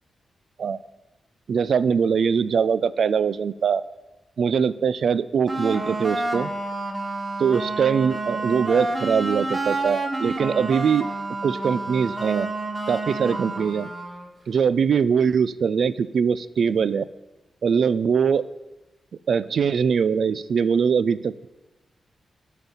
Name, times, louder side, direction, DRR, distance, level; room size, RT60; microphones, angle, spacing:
voice 1, 1.5-3.8 4.4-6.5 7.4-11.1 11.4-12.5 12.9-13.9 14.5-17.0 17.6-18.4 19.3-21.5, right 6 dB, 70° right, 17 dB, 0.3 m, -22 dB
sound 1, 5.5-14.3, right 2 dB, 25° right, 1.0 m, -29 dB
9.0 x 4.1 x 7.0 m, 1.0 s
wide cardioid pair, 125°, 0 cm